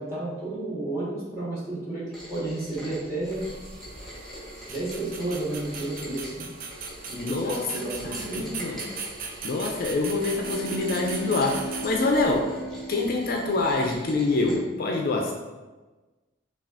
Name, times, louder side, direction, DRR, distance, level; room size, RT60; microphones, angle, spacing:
voice 1, 0.0-3.4 4.7-6.5 7.1-8.5, right 2 dB, 15° right, -9 dB, 1.4 m, -32 dB
Rain, 2.1-14.5, equal, ahead, 1.1 m, -43 dB
sound 1, 3.2-12.4, right 5 dB, 45° right, 0.4 m, -39 dB
voice 2, 7.2-7.6 8.0-8.9 9.4-12.5 12.9-15.3, left 3 dB, 50° left, 2 dB, 0.4 m, -26 dB
sound 2, 10.0-14.0, right 1 dB, 25° left, 0.7 m, -37 dB
5.6 x 2.4 x 2.5 m, 1.2 s
head